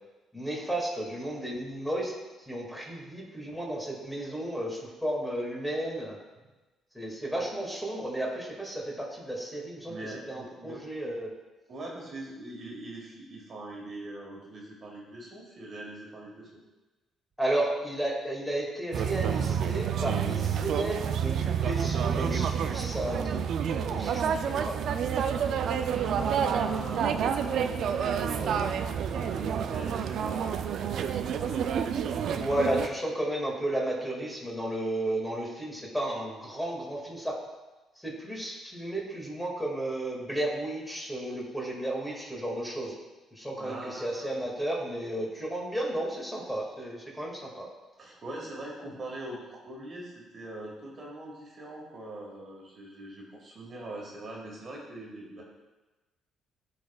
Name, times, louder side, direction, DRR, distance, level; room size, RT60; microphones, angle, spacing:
voice 1, 0.3-2.1 2.4-6.2 6.9-11.3 17.4-24.8 32.2-37.4 38.0-42.9 43.3-47.7, right 1 dB, 5° left, -3 dB, 2.0 m, -33 dB
voice 2, 9.9-10.8 11.7-16.6 25.9-28.6 29.1-31.6 43.6-44.3 48.0-55.4, right 2 dB, 45° right, -2 dB, 1.6 m, -42 dB
sound 1, 18.9-32.9, right 7 dB, 65° right, 0.4 m, -29 dB
11.5 x 4.1 x 2.3 m, 1.1 s
supercardioid pair, 70°, 0 cm